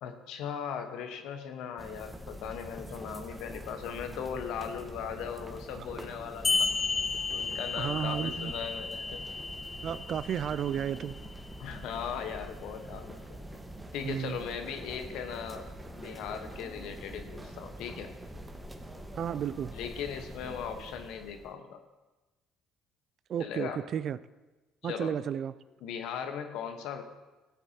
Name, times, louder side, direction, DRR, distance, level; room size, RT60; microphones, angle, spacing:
voice 1, 0.0-6.7 7.3-9.3 11.6-13.4 13.9-15.7 16.0-18.1 19.7-21.8 23.4-23.9 24.8-25.1 25.8-27.0, left 7 dB, 70° left, 7 dB, 1.0 m, -38 dB
sound 1, 1.8-21.5, right 1 dB, 15° right, 1.2 m, -45 dB
sound 2, 6.4-11.5, left 4 dB, 35° left, 0.6 m, -33 dB
voice 2, 7.8-8.5 9.8-11.1 14.0-14.4 19.2-19.7 23.3-24.2 24.8-25.5, right 8 dB, 55° right, 16 dB, 0.4 m, -32 dB
16.0 x 8.3 x 2.8 m, 1.1 s
hypercardioid pair, 60°, 0 cm